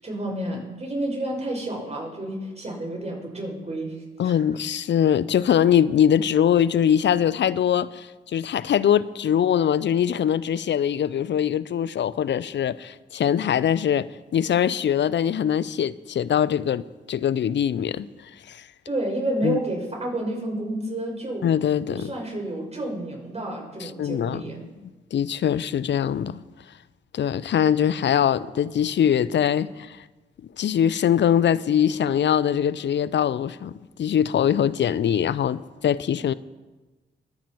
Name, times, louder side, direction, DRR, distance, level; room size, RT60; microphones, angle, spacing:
voice 1, 0.0-4.4 18.9-21.5 21.9-24.6, right 1 dB, 30° right, 5.9 m, -30 dB
voice 2, 4.2-18.1 18.5-18.6 19.4-19.6 21.4-22.1 23.8-24.4 25.1-26.4 27.1-30.0 30.6-36.3, left 9 dB, 60° left, 0.6 m, -22 dB
23.0 x 9.1 x 4.5 m
supercardioid pair, 45°, 21 cm